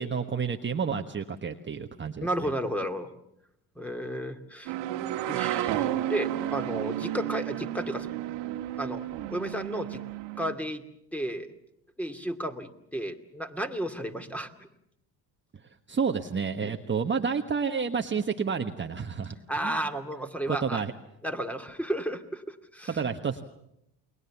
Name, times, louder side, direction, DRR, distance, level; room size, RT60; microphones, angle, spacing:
voice 1, 0.0-2.5 15.9-19.4 19.6-19.8 20.5-20.9 22.9-23.5, right 6 dB, 25° right, 4 dB, 1.4 m, -30 dB
voice 2, 2.2-3.1 3.8-4.7 5.3-8.1 8.8-10.0 10.4-11.5 12.0-14.7 16.6-16.8 19.5-20.8 21.2-23.0, right 1 dB, 5° left, 7 dB, 2.4 m, -33 dB
sound 1, 4.7-10.6, right 12 dB, 65° right, 1.8 m, -32 dB
29.5 x 21.0 x 7.2 m, 0.79 s
hypercardioid pair, 75°, 47 cm